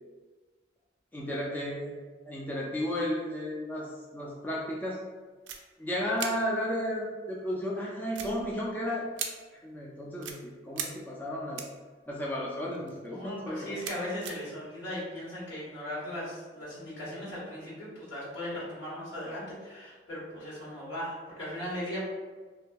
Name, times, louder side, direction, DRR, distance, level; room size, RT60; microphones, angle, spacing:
voice 1, 1.1-5.0 5.8-9.1 9.6-11.7 12.1-13.7, equal, 10° left, -4 dB, 0.3 m, -33 dB
sound 1, 5.5-5.6 6.1-6.3 8.1-8.7 9.2-9.3 10.2-10.4 10.8-10.9 11.6-11.8 12.7-13.1 13.4-14.3, right 7 dB, 70° right, 0.3 m, -37 dB
voice 2, 13.1-22.0, left 1 dB, 75° left, -8 dB, 1.3 m, -38 dB
2.6 x 2.5 x 2.2 m, 1.4 s
head